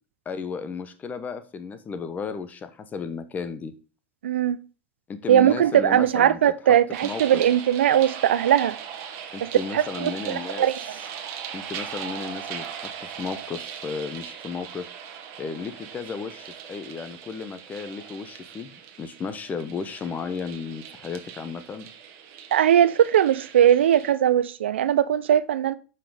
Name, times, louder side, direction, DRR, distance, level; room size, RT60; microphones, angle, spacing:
voice 1, 0.2-3.7 5.1-6.4 6.7-6.8 7.0-7.4 9.3-11.0 11.5-14.9 15.4-18.7 19.0-21.9, left 5 dB, 25° left, 0.9 m, -34 dB
voice 2, 4.2-4.6 5.3-8.8 9.4-10.8 22.5-25.7, right 10 dB, 90° right, 0.4 m, -20 dB
sound 1, 6.9-24.1, right 8 dB, 55° right, 1.3 m, -39 dB
5.7 x 5.2 x 4.9 m
hypercardioid pair, 105°, 6 cm